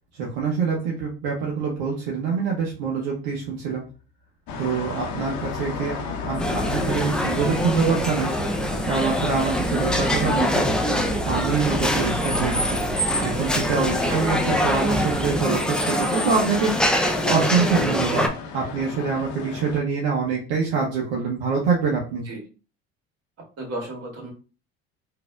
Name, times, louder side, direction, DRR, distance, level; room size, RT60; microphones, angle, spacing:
voice 1, 0.1-3.8 4.6-8.3 8.8-10.7 11.2-12.8 13.2-18.3 18.5-22.2, right 5 dB, 75° right, -2 dB, 0.9 m, -25 dB
sound 1, 4.5-19.8, left 5 dB, 65° left, 0.8 m, -35 dB
sound 2, 6.3-15.4, right 2 dB, 15° right, 0.9 m, -32 dB
sound 3, 6.4-18.3, equal, ahead, 0.5 m, -24 dB
voice 2, 23.6-24.3, right 1 dB, 50° right, -1 dB, 1.9 m, -33 dB
4.0 x 2.8 x 2.3 m, 0.35 s
hypercardioid pair, 70°, 32 cm